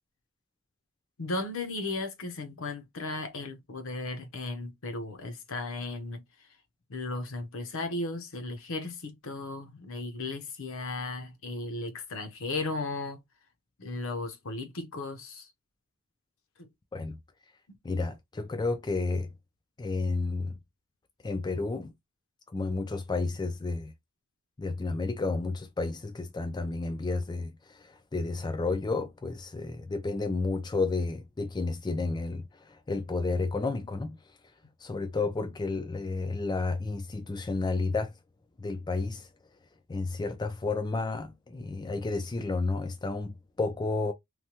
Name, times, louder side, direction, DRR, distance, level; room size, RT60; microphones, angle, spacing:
voice 1, 1.2-6.2 6.9-13.2 13.8-15.5 16.6-16.7, left 2 dB, 65° left, 0.7 m, -35 dB
voice 2, 17.8-19.3 19.8-20.6 21.2-21.9 22.5-23.9 24.6-34.2 34.8-38.1 38.6-39.3 39.9-44.1, left 3 dB, 20° left, 0.3 m, -31 dB
3.1 x 2.2 x 2.8 m
head